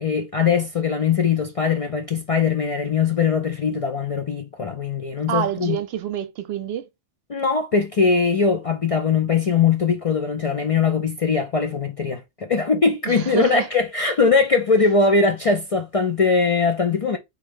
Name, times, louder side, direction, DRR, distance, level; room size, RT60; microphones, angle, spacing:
voice 1, 0.0-5.8 7.3-17.2, left 5 dB, 45° left, 0.4 m, -21 dB
voice 2, 5.3-6.9 13.1-13.7, right 10 dB, 70° right, 0.8 m, -27 dB
3.6 x 3.2 x 3.4 m
omnidirectional pair, 1.1 m